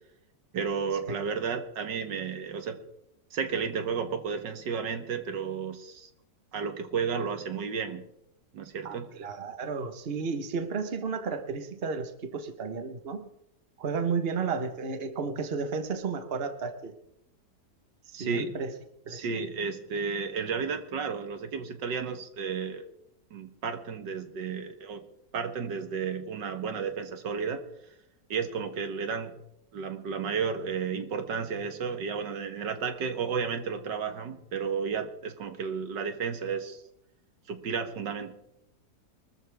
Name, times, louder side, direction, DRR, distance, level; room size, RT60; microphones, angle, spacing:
voice 1, 0.5-2.8 3.3-6.1 6.5-8.0 8.5-9.1 18.1-18.5 19.1-22.9 23.3-25.0 25.3-27.6 28.3-29.4 29.7-36.8 37.5-38.3, right 6 dB, 80° right, 8 dB, 2.0 m, -32 dB
voice 2, 8.8-13.3 13.8-16.9 18.1-18.7 19.1-19.5, right 5 dB, 35° right, 8 dB, 1.4 m, -33 dB
24.0 x 14.0 x 3.5 m, 0.79 s
omnidirectional pair, 1.9 m